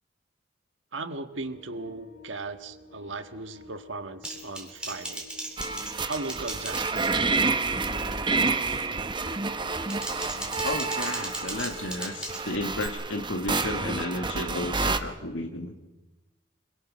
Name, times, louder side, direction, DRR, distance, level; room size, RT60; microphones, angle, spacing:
voice 1, 0.9-5.3 6.1-7.2, right 3 dB, 70° right, 8 dB, 1.6 m, -37 dB
sound 1, 1.3-11.2, left 4 dB, 60° left, 2.9 m, -50 dB
Typing, 4.2-7.4 7.7-8.1 8.5-8.8 9.6-12.9, right 2 dB, 5° right, 3.1 m, -38 dB
sound 2, 5.6-15.0, right 3 dB, 25° right, 0.8 m, -29 dB
voice 2, 10.6-15.7, left 2 dB, 75° left, 3 dB, 1.7 m, -33 dB
26.0 x 22.0 x 6.3 m, 1.1 s
head